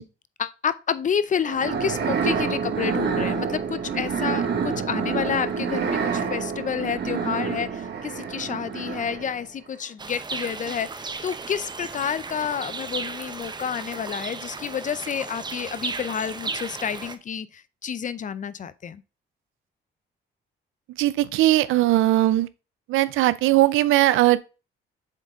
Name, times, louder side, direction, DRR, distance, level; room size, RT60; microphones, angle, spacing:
voice 1, 0.4-19.0, left 7 dB, 40° left, 0.5 m, -29 dB
sound 1, 1.4-9.5, right 6 dB, 60° right, 1.4 m, -27 dB
sound 2, 10.0-17.2, right 4 dB, 20° right, 0.7 m, -35 dB
voice 2, 21.0-22.5 22.9-24.4, right 15 dB, 85° right, 0.5 m, -19 dB
7.5 x 3.9 x 3.6 m
cardioid pair, 90°, 20 cm